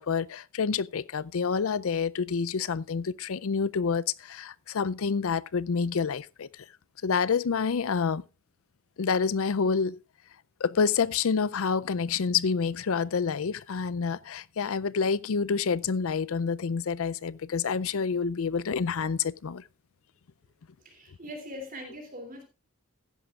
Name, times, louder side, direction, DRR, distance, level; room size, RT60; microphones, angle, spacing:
voice 1, 0.0-6.5 7.0-8.2 9.0-10.0 10.6-19.6, left 5 dB, 65° left, 0.5 m, -28 dB
voice 2, 20.8-22.4, equal, 40° right, 3.0 m, -41 dB
15.5 x 10.5 x 2.4 m
head